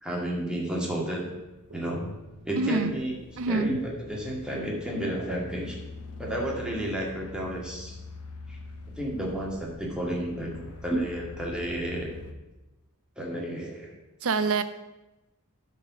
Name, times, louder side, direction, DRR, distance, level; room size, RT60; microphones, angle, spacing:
voice 1, 0.0-1.3 1.7-2.1 2.5-3.2 3.5-5.8 6.2-8.0 8.5-8.6 9.0-12.1 13.2-13.9, right 1 dB, 5° right, -3 dB, 2.0 m, -31 dB
sound 1, 0.8-12.3, left 3 dB, 85° left, 1.0 m, -45 dB
voice 2, 2.6-2.9 3.4-3.7 14.2-14.6, right 3 dB, 65° right, 12 dB, 0.6 m, -25 dB
11.5 x 4.4 x 6.2 m, 1.0 s
head